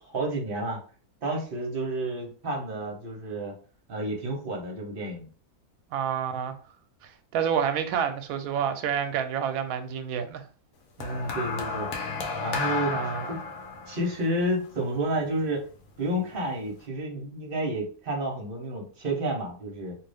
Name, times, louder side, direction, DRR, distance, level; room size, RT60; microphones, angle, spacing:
voice 1, 0.0-0.8 1.2-3.5 3.9-5.3 11.0-11.9 12.4-13.0 13.3-13.4 13.9-15.7 16.0-20.0, right 1 dB, 45° right, 0.9 m, -30 dB
voice 2, 5.9-6.6 7.3-10.4 12.9-13.4, right 8 dB, 75° right, 1.0 m, -28 dB
sound 1, 11.0-15.4 16.4-16.6, left 4 dB, 75° left, 1.0 m, -33 dB
2.6 x 2.5 x 3.3 m
omnidirectional pair, 1.6 m